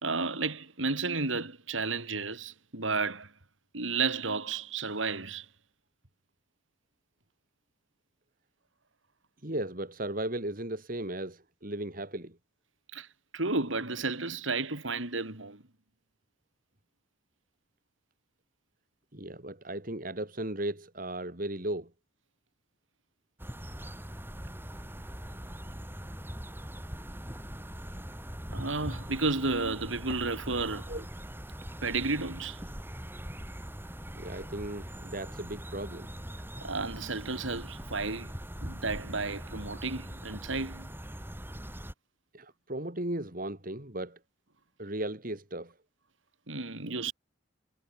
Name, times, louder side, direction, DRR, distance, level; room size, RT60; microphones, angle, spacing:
voice 1, 0.0-3.3 3.7-5.5 12.9-13.1 13.3-15.6 28.5-30.9 31.8-32.6 36.6-38.3 38.6-40.9 46.5-47.1, right 3 dB, 90° right, 3.7 m, -32 dB
voice 2, 9.4-12.4 19.1-21.9 30.9-31.0 34.1-36.1 42.3-44.2 44.8-45.7 46.9-47.0, right 1 dB, 45° right, 3.3 m, -36 dB
sound 1, 23.4-41.9, equal, 10° right, 7.1 m, -42 dB
head